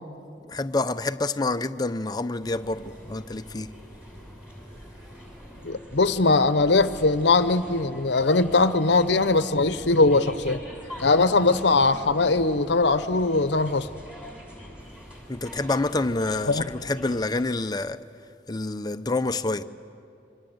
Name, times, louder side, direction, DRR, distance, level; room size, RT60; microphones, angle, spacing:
voice 1, 0.5-3.7 15.3-18.0 18.5-19.6, left 2 dB, 20° left, 0.6 m, -27 dB
sound 1, 2.4-17.3, equal, 5° right, 6.3 m, -44 dB
voice 2, 5.6-10.6 11.0-13.9 16.5-16.7, left 3 dB, 65° left, 0.8 m, -21 dB
28.0 x 25.0 x 8.0 m
head